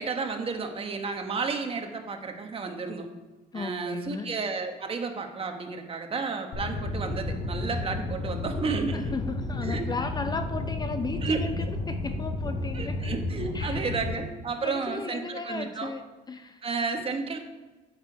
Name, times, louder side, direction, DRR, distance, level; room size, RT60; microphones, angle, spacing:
voice 1, 0.0-3.1 3.5-9.1 9.6-9.9 11.2-11.5 12.7-15.9 16.6-17.4, right 4 dB, 35° right, 4 dB, 1.4 m, -32 dB
voice 2, 3.5-4.3 8.9-13.1 13.5-14.1 14.6-16.6, left 4 dB, 25° left, 8 dB, 0.5 m, -35 dB
sound 1, 6.5-14.2, left 2 dB, 75° left, 3.2 m, -32 dB
9.1 x 6.8 x 5.2 m, 1.2 s
cardioid pair, 110°, 17 cm